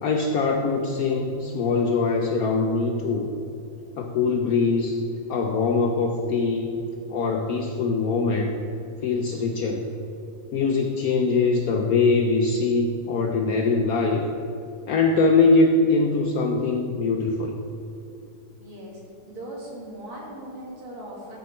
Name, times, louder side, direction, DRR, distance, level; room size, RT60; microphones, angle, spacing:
voice 1, 0.0-3.3 4.0-5.0 5.3-6.7 7.1-8.5 9.0-9.9 10.5-14.2 14.9-17.6, left 3 dB, 85° left, 3 dB, 0.8 m, -22 dB
voice 2, 18.6-19.0 19.3-21.4, right 1 dB, 85° right, -4 dB, 2.8 m, -39 dB
14.0 x 4.7 x 4.3 m, 2.8 s
omnidirectional pair, 2.2 m